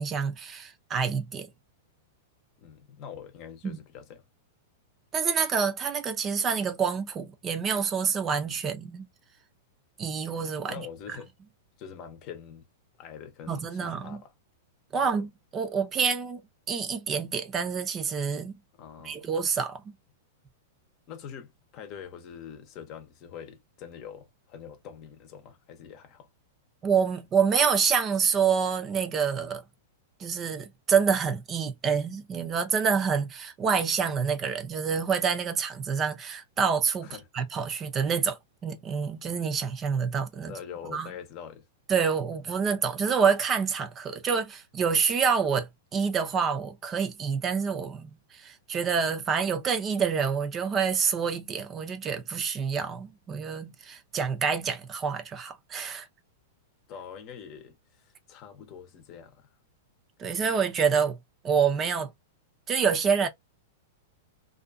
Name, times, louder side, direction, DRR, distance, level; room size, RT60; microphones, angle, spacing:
voice 1, 0.0-1.5 3.6-3.8 5.1-9.1 10.0-10.9 13.5-14.2 14.9-16.4 16.7-18.6 19.0-19.8 26.8-29.6 30.2-40.5 40.8-41.1 41.9-56.1 60.2-61.2 61.4-62.1 62.7-63.3, right 6 dB, 25° right, 0.5 m, -27 dB
voice 2, 2.6-4.2 10.6-11.3 11.8-12.7 13.0-14.3 14.9-15.2 18.8-19.2 21.1-26.3 37.0-37.3 40.5-41.7 56.9-59.5, left 8 dB, 45° left, 0.8 m, -44 dB
2.6 x 2.4 x 2.3 m
hypercardioid pair, 115°, 0 cm